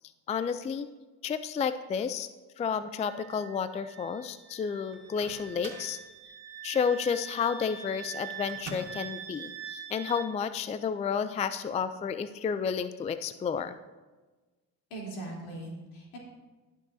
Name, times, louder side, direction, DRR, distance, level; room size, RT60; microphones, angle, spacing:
voice 1, 0.3-0.9 1.2-2.3 2.6-6.0 6.6-13.8, left 6 dB, 20° left, 12 dB, 0.3 m, -31 dB
Wind instrument woodwind instrument, 3.0-10.3, right 6 dB, 65° right, 1.7 m, -44 dB
Microwave oven, 4.9-6.0 8.5-9.1, right 4 dB, 85° right, 1.9 m, -44 dB
voice 2, 14.9-16.2, right 2 dB, 75° left, -3 dB, 3.4 m, -40 dB
18.5 x 6.3 x 2.7 m, 1.2 s
supercardioid pair, 70°, 42 cm